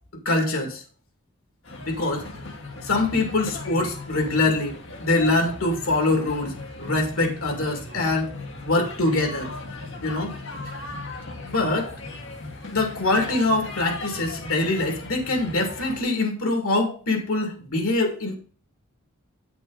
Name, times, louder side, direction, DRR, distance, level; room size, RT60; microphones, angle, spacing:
voice 1, 0.3-0.8 1.8-2.2 2.8-4.8 5.0-6.5 6.8-8.3 8.6-9.5 10.0-10.3 11.4-11.9 12.7-18.4, left 2 dB, 85° left, 4 dB, 2.2 m, -24 dB
sound 1, 1.6-16.0, left 2 dB, 60° left, 1.7 m, -37 dB
8.8 x 6.0 x 3.9 m, 0.40 s
head